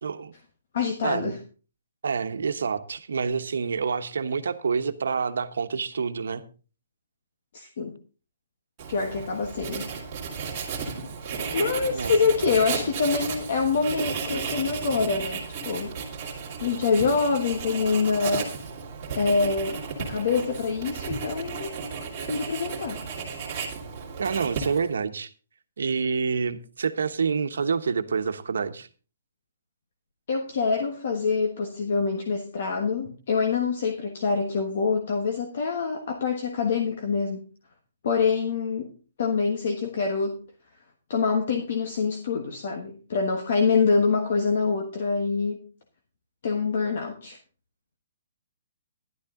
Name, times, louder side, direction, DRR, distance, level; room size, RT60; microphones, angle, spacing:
voice 1, 0.0-0.3 1.0-1.3 2.0-6.4 11.9-12.1 24.2-25.3 25.8-28.9, right 5 dB, 85° right, 1.1 m, -27 dB
voice 2, 0.7-1.4 7.5-8.0 8.9-9.9 11.5-15.9 16.6-18.5 19.1-21.7 22.3-23.0 30.3-37.4 38.0-38.9 39.2-40.4 41.1-45.6 46.4-47.4, left 5 dB, 45° left, 1.3 m, -25 dB
Writing, 8.8-25.0, right 5 dB, 20° right, 2.5 m, -34 dB
12.0 x 11.5 x 3.8 m
hypercardioid pair, 180°, 0 cm